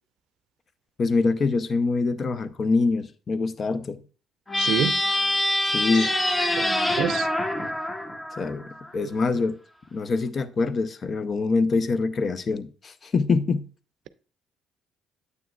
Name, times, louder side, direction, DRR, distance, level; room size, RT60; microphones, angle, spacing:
voice 1, 1.0-4.0 5.6-6.1 8.4-9.5 9.9-13.7, left 4 dB, 45° left, 0.7 m, -24 dB
sound 1, 4.5-8.9, left 1 dB, 20° left, 1.2 m, -25 dB
voice 2, 4.6-5.0 5.9-6.1 6.4-7.3 8.9-9.1, right 10 dB, 65° right, 0.5 m, -29 dB
9.2 x 8.2 x 2.3 m
hypercardioid pair, 45°, 0 cm